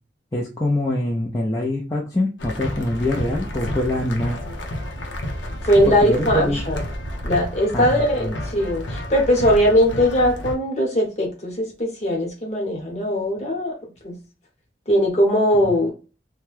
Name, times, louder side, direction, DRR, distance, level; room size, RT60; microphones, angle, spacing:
voice 1, 0.3-4.4 5.9-6.6 7.7-8.3 15.7-15.8, left 1 dB, 20° left, -4 dB, 0.4 m, -24 dB
sound 1, 2.4-10.5, left 1 dB, 85° left, 0.7 m, -30 dB
voice 2, 5.6-6.8 7.2-13.7 14.0-14.2 14.9-15.9, equal, 35° left, 0 dB, 1.0 m, -20 dB
2.7 x 2.2 x 3.2 m, 0.34 s
head